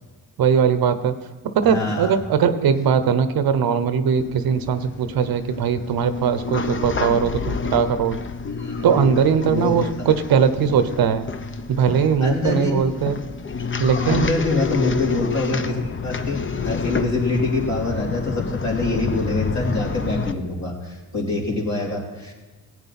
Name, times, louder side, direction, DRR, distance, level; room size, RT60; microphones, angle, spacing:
voice 1, 0.4-1.1 1.5-8.2 8.8-11.3 11.7-13.2 13.8-14.3, right 7 dB, 85° right, 11 dB, 0.9 m, -20 dB
voice 2, 1.7-2.2 7.0-7.2 8.6-8.9 9.5-9.8 12.2-12.8 13.1-13.3 13.9-22.3, left 2 dB, 50° left, -2 dB, 3.1 m, -25 dB
sound 1, 4.2-20.3, left 5 dB, 35° left, 0.7 m, -29 dB
15.0 x 8.8 x 4.2 m, 1.3 s
cardioid pair, 75°, 35 cm